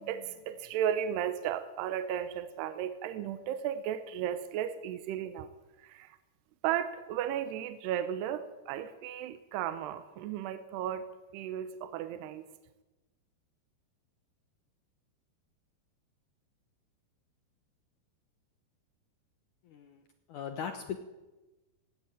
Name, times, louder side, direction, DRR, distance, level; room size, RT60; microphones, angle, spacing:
voice 1, 0.0-5.5 5.8-6.1 6.6-11.0 11.3-12.5, right 10 dB, 80° right, 11 dB, 3.0 m, -34 dB
voice 2, 19.7-20.0 20.3-21.0, left 7 dB, 70° left, 7 dB, 2.0 m, -38 dB
19.0 x 16.5 x 9.0 m, 1.1 s
omnidirectional pair, 4.8 m